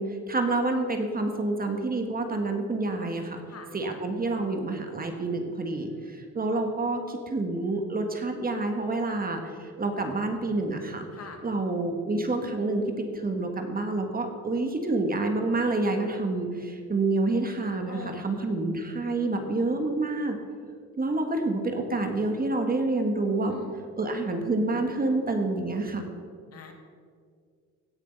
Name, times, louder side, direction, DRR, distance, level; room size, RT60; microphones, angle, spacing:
voice 1, 0.0-3.4 3.7-11.1 11.4-20.4 21.0-23.6 24.0-26.0, right 2 dB, 30° right, 4 dB, 1.6 m, -28 dB
voice 2, 4.8-5.3 5.6-6.1 11.1-11.4 17.9-18.5 23.5-23.7 26.5-26.7, left 4 dB, 55° left, 5 dB, 1.7 m, -44 dB
16.5 x 6.7 x 5.4 m, 2.1 s
cardioid pair, 90°, 30 cm